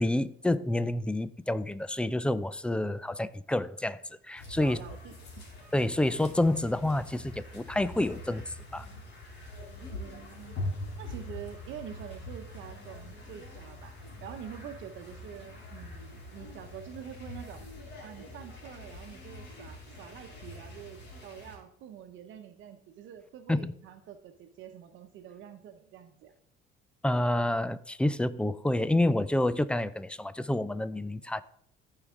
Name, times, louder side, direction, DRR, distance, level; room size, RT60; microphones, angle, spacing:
voice 1, 0.0-4.8 5.7-8.9 23.5-23.7 27.0-31.4, left 1 dB, 5° left, 0.3 m, -28 dB
sound 1, 4.4-21.6, left 1 dB, 55° left, 3.5 m, -43 dB
voice 2, 4.6-5.5 9.9-17.6 18.0-26.3, right 9 dB, 65° right, 0.9 m, -46 dB
14.0 x 4.9 x 3.7 m
cardioid pair, 125°, 21 cm